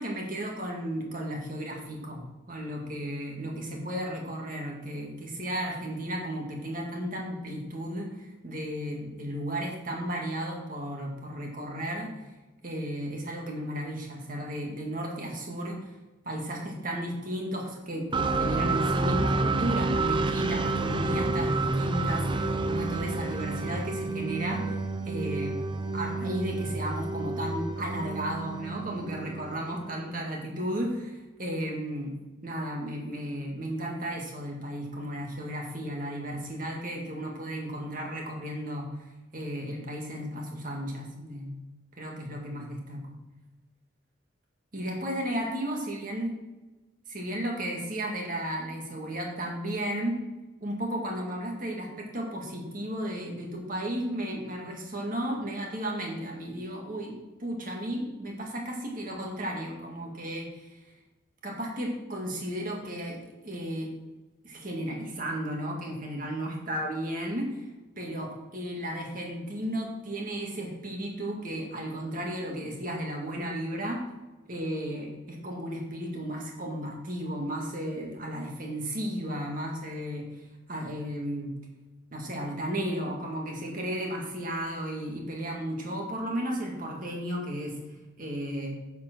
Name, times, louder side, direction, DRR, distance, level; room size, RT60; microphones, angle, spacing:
voice 1, 0.0-12.1 12.6-15.9 16.2-24.8 25.1-25.6 25.9-32.2 32.4-38.9 39.3-41.6 42.0-43.1 44.7-46.3 47.1-50.2 50.6-60.8 61.4-63.9 64.4-67.7 68.0-74.0 74.5-80.2 80.7-81.5 82.1-87.8 88.2-88.7, equal, 45° right, 0 dB, 1.9 m, -34 dB
sound 1, 18.1-29.9, right 3 dB, 25° right, 0.5 m, -29 dB
7.7 x 7.0 x 6.1 m, 1.1 s
head